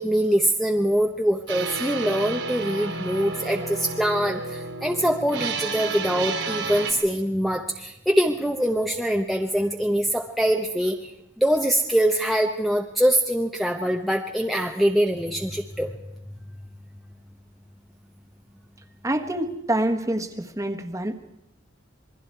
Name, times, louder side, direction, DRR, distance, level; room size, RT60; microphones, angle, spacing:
voice 1, 0.0-11.1 11.4-16.0, equal, ahead, 0 dB, 0.9 m, -23 dB
sound 1, 1.5-6.9, right 4 dB, 80° right, 3.4 m, -31 dB
voice 2, 19.0-21.1, right 1 dB, 15° right, 5 dB, 1.5 m, -26 dB
27.5 x 21.5 x 4.6 m, 0.83 s
head